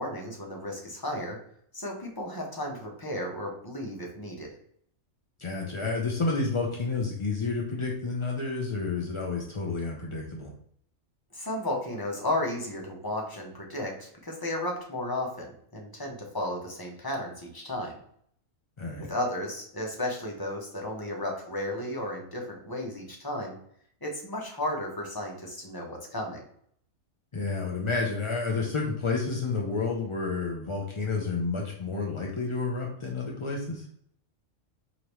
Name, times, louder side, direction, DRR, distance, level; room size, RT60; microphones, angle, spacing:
voice 1, 0.0-1.4 1.7-4.5 11.3-18.0 19.1-23.6 24.0-26.4, left 1 dB, 20° left, 0 dB, 0.8 m, -34 dB
voice 2, 5.4-10.5 18.8-19.1 27.3-33.9, left 4 dB, 50° left, 0 dB, 0.3 m, -30 dB
5.0 x 3.0 x 3.0 m, 0.64 s
omnidirectional pair, 1.4 m